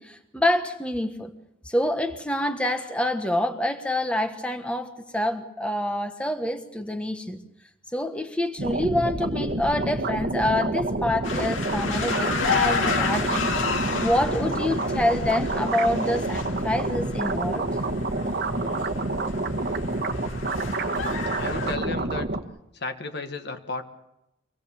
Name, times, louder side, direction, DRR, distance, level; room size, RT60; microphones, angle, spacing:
voice 1, 0.0-1.3 1.6-7.4 7.9-13.4 14.0-17.6, left 1 dB, 5° left, 6 dB, 1.2 m, -26 dB
sound 1, 8.6-22.4, right 2 dB, 55° right, 1.4 m, -28 dB
sound 2, 11.2-21.8, left 5 dB, 85° left, 2.1 m, -31 dB
voice 2, 21.4-22.3 22.7-23.8, left 3 dB, 60° left, 7 dB, 1.6 m, -33 dB
25.0 x 18.5 x 7.1 m, 0.85 s
head